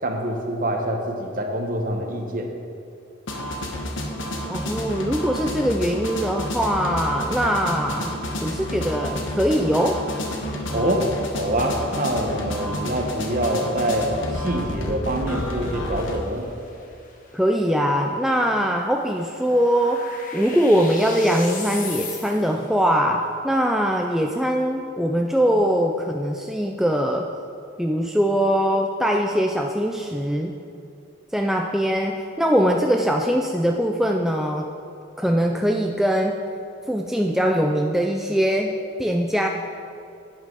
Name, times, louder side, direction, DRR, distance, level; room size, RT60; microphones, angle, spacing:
voice 1, 0.0-2.5 10.7-16.5, right 1 dB, 45° right, 2 dB, 1.1 m, -25 dB
sound 1, 3.3-16.2, equal, 75° left, 1.2 m, -30 dB
voice 2, 4.5-8.2 8.4-10.0 17.3-27.3 27.8-30.6 31.3-34.7 35.2-36.4 36.9-39.5, equal, ahead, 1 dB, 0.3 m, -22 dB
sound 2, 15.3-22.7, left 4 dB, 40° left, 1.1 m, -39 dB
11.0 x 8.9 x 3.9 m, 2.6 s
head